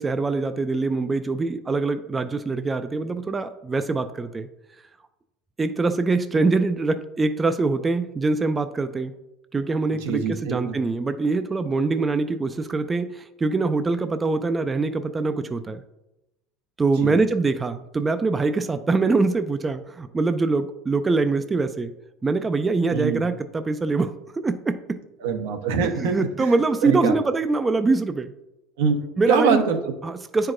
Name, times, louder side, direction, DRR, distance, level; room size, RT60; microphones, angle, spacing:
voice 1, 0.0-4.5 5.6-9.1 9.5-15.8 16.8-21.9 22.2-24.8 26.0-28.3 29.2-29.6 30.0-30.5, right 3 dB, 15° right, 10 dB, 0.3 m, -23 dB
voice 2, 10.0-10.7 17.0-17.1 22.9-23.2 25.2-26.5 26.8-27.2 28.8-29.0 29.3-29.9, right 5 dB, 85° right, 5 dB, 0.9 m, -24 dB
9.4 x 4.7 x 2.5 m, 0.92 s
supercardioid pair, 125°, 0 cm